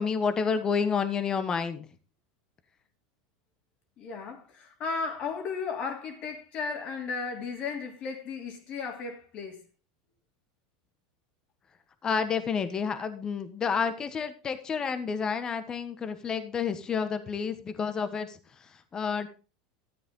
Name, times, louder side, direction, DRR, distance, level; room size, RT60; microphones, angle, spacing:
voice 1, 0.0-1.9 12.0-19.3, left 6 dB, 30° left, 1.4 m, -30 dB
voice 2, 4.0-9.7, left 5 dB, 45° left, 3.1 m, -35 dB
13.0 x 8.4 x 3.8 m
hypercardioid pair, 105°, 3 cm